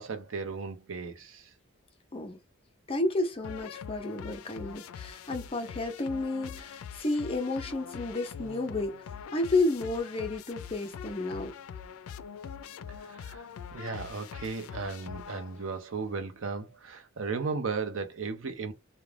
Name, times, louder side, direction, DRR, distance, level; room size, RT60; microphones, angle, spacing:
voice 1, 0.0-1.5 13.0-18.7, right 4 dB, 70° right, 0.6 m, -36 dB
voice 2, 2.9-8.9 9.3-11.5, left 2 dB, 25° left, 0.5 m, -31 dB
sound 1, 3.4-15.8, left 7 dB, 90° left, 0.3 m, -44 dB
2.4 x 2.1 x 3.2 m
head